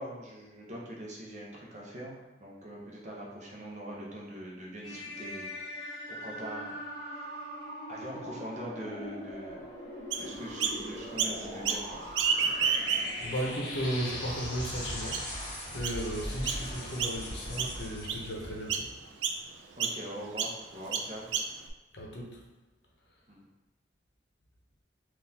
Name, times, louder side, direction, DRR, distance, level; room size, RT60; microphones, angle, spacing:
voice 1, 0.0-5.6 5.8-7.5 7.9-9.7 10.2-12.0 19.8-21.3 23.3-23.5, equal, 40° right, -3 dB, 0.6 m, -43 dB
sound 1, 4.8-18.6, equal, 25° left, 0.9 m, -40 dB
Chirp tweet, 10.1-10.8 11.2-11.8 12.1-13.3 13.9-14.0 14.6-14.7 15.1-15.4 15.8-16.0 16.5-16.7 17.0-17.3 17.6-18.3 18.7-18.9 19.2-19.4 19.8-20.0 20.4-20.5 20.9-21.7, right 6 dB, 85° right, 0.3 m, -30 dB
voice 2, 13.2-18.9 21.9-22.4, equal, 65° left, -1 dB, 0.7 m, -35 dB
3.8 x 2.4 x 2.7 m, 1.1 s
head